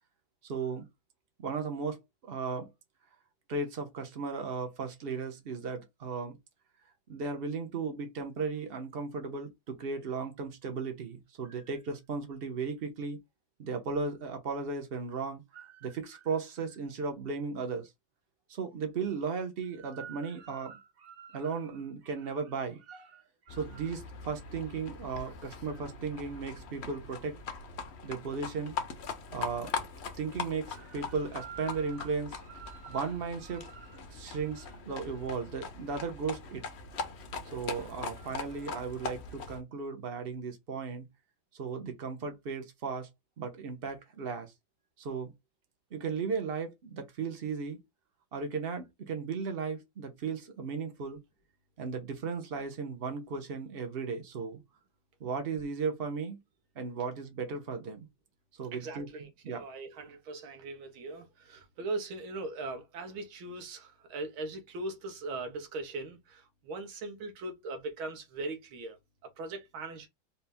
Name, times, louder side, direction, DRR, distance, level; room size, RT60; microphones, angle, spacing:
voice 1, 0.4-0.9 1.4-2.7 3.5-6.4 7.1-13.2 13.6-17.9 18.5-23.2 23.5-27.4 28.0-28.8 29.3-29.7 30.2-36.6 37.5-41.1 41.5-43.1 43.4-44.5 45.0-45.3 45.9-47.8 48.3-51.2 51.8-54.6 55.2-56.4 56.8-58.1 58.6-59.2 59.4-59.6, right 5 dB, 45° right, 0.8 m, -36 dB
Livestock farm animals working animals, 23.5-39.6, left 5 dB, 55° left, 0.7 m, -41 dB
voice 2, 58.7-69.0 69.4-70.1, right 2 dB, 85° right, 1.9 m, -40 dB
4.3 x 2.6 x 3.4 m
omnidirectional pair, 2.2 m